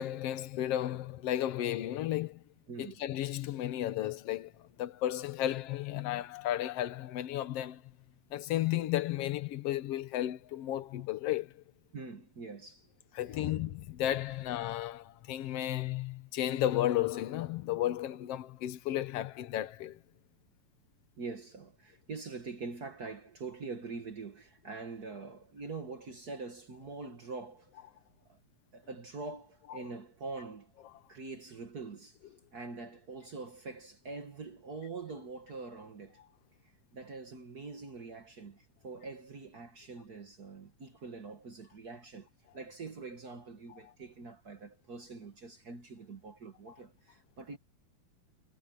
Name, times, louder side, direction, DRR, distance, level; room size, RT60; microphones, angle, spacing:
voice 1, 0.0-2.4 2.8-7.8 8.3-11.6 13.1-20.0, left 13 dB, 90° left, 1.3 m, -33 dB
voice 2, 2.7-3.0 11.9-12.9 13.3-13.5 21.2-27.7 28.3-28.4 28.7-30.7 31.1-32.2 32.5-36.2 36.9-42.3 42.5-47.6, right 4 dB, 60° right, 1.0 m, -44 dB
omnidirectional pair, 4.2 m